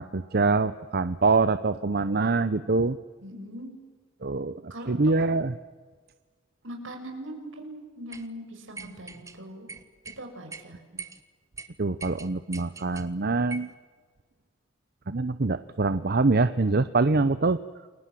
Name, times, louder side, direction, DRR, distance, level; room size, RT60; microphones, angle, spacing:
voice 1, 0.0-3.0 4.2-5.5 11.8-13.7 15.1-17.6, right 3 dB, 50° right, 13 dB, 0.8 m, -24 dB
voice 2, 3.2-3.8 4.7-5.1 6.6-9.7 10.2-10.8, right 1 dB, 75° right, 4 dB, 6.2 m, -40 dB
sound 1, 8.1-8.3 8.8-9.4 9.7-10.2 10.5-10.6 11.0-11.2 11.6-11.7 12.0-13.1 13.5-13.7, right 4 dB, 15° right, 1.5 m, -41 dB
29.0 x 23.0 x 7.7 m, 1.4 s
head